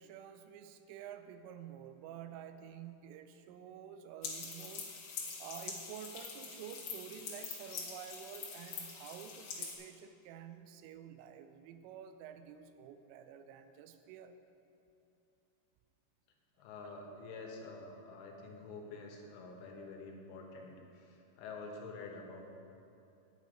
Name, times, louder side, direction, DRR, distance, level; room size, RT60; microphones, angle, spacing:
voice 1, 0.0-5.0 5.4-14.4 16.8-16.9, right 9 dB, 90° right, 9 dB, 3.2 m, -50 dB
sound 1, 4.2-9.7, left 5 dB, 60° left, 2.4 m, -44 dB
voice 2, 16.6-22.4, left 3 dB, 80° left, 1 dB, 3.5 m, -48 dB
9.3 x 9.1 x 5.1 m, 2.8 s
omnidirectional pair, 5.6 m